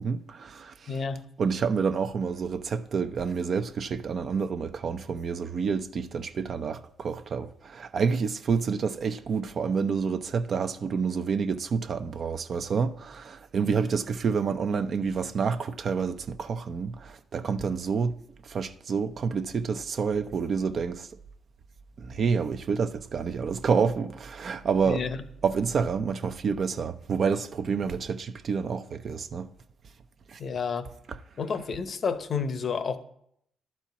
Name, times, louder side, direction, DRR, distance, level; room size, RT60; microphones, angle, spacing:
voice 1, 0.0-0.9 1.4-18.2 18.4-21.1 22.0-25.0 25.4-29.5 30.3-30.4 31.1-31.2, right 5 dB, 50° right, 0.6 m, -28 dB
voice 2, 0.9-1.2 24.9-25.2 30.4-30.9 31.4-33.0, left 5 dB, 50° left, 0.8 m, -30 dB
11.5 x 4.4 x 8.2 m
cardioid pair, 90°, 0 cm